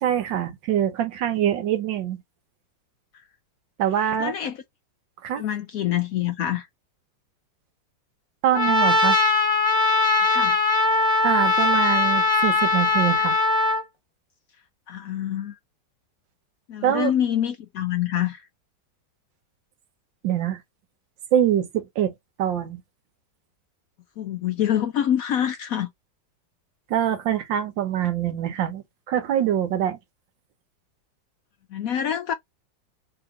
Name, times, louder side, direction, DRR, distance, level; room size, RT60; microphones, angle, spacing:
voice 1, 0.0-2.2 3.8-4.3 5.2-5.4 8.4-9.2 11.2-13.4 16.8-17.1 20.2-20.6 21.3-22.1 22.4-22.8 26.9-30.0, right 10 dB, 90° right, 1.6 m, -24 dB
voice 2, 4.0-4.6 5.4-6.7 10.3-10.6 14.9-15.5 16.7-18.4 24.2-25.9 31.7-32.3, left 10 dB, 70° left, 0.8 m, -26 dB
Trumpet, 8.5-13.8, left 3 dB, 5° left, 1.2 m, -20 dB
3.4 x 2.9 x 3.6 m
omnidirectional pair, 2.0 m